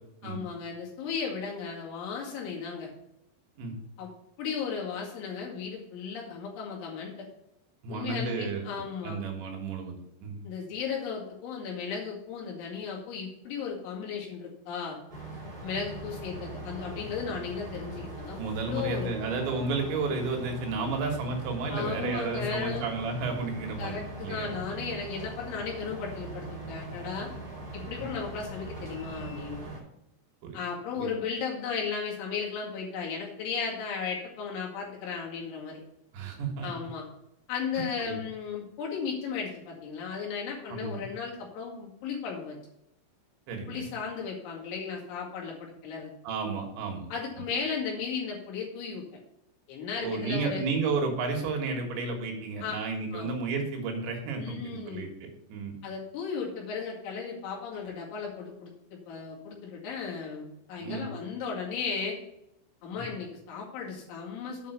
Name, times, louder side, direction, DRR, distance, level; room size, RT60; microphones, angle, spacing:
voice 1, 0.2-2.9 4.0-4.1 4.4-7.3 7.9-9.2 10.4-15.0 15.6-19.1 21.7-22.9 23.8-27.3 27.7-29.6 30.5-35.8 36.6-37.1 37.5-42.6 43.7-46.1 47.1-49.0 49.7-50.6 52.6-52.8 53.1-53.3 54.4-55.1 55.8-58.7 59.1-62.2 62.8-64.7, left 6 dB, 75° left, -2 dB, 4.4 m, -35 dB
voice 2, 7.8-8.6 9.0-10.4 18.4-24.5 28.0-28.1 30.4-30.6 31.0-31.1 36.1-36.7 37.8-38.2 40.7-41.1 43.5-43.9 46.2-47.1 47.4-47.5 50.0-55.7 60.8-61.1 63.0-63.1, right 4 dB, 70° right, 2 dB, 3.5 m, -32 dB
sound 1, 15.1-29.8, right 2 dB, 20° right, 1.6 m, -41 dB
8.4 x 5.4 x 6.6 m, 0.84 s
omnidirectional pair, 5.6 m